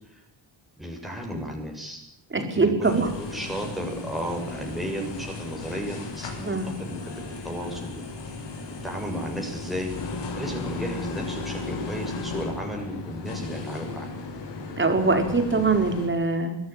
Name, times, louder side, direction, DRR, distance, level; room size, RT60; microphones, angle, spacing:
voice 1, 0.8-2.0 2.3-8.0 8.8-9.9 10.3-14.1, equal, ahead, 0 dB, 7.4 m, -34 dB
voice 2, 2.3-3.1 6.4-6.7 14.8-16.6, right 3 dB, 25° right, 6 dB, 5.1 m, -23 dB
sound 1, 2.8-16.1, left 3 dB, 65° left, 7.3 m, -35 dB
25.5 x 15.0 x 9.3 m, 0.73 s
cardioid pair, 125°, 45 cm